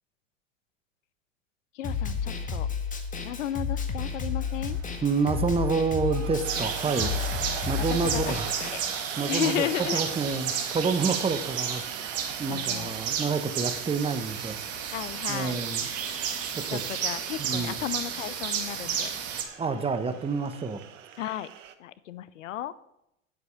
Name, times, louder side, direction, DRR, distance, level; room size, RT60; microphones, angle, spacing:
voice 1, 1.7-2.7 3.2-4.8 6.9-7.2 7.9-8.3 8.7-8.8 9.3-10.0 12.5-12.9 14.9-15.6 16.7-19.1 21.2-21.5 21.8-22.7, left 12 dB, 70° left, 16 dB, 0.7 m, -33 dB
Snare drum, 1.8-8.7, left 5 dB, 20° left, 1.7 m, -32 dB
sound 1, 4.1-21.7, right 10 dB, 70° right, 1.2 m, -44 dB
voice 2, 5.0-8.5 8.8-14.6 15.3-15.9 16.5-16.8 17.4-17.8 19.6-20.8, right 4 dB, 15° right, 9 dB, 1.0 m, -29 dB
sound 2, 6.4-19.4, right 7 dB, 35° right, 2.1 m, -32 dB
9.8 x 8.1 x 6.5 m, 0.82 s
hypercardioid pair, 90°, 40 cm